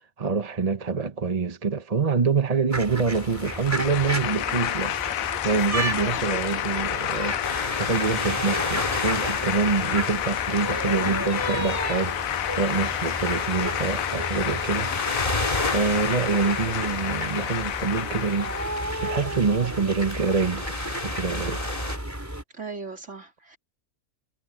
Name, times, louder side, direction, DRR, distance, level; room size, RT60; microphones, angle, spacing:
voice 1, 0.2-5.0 5.4-12.2 12.5-14.9 15.6-18.5 19.0-20.8 21.0-21.6, right 5 dB, 30° right, 1.0 m, -26 dB
sound 1, 2.7-22.4, right 1 dB, 10° right, 4.3 m, -34 dB
sound 2, 3.1-19.2, left 12 dB, 80° left, 1.1 m, -30 dB
voice 2, 6.0-6.3 22.5-23.6, right 4 dB, 55° right, 4.0 m, -38 dB
sound 3, 7.4-22.0, left 2 dB, 25° left, 2.5 m, -33 dB
omnidirectional pair, 1.4 m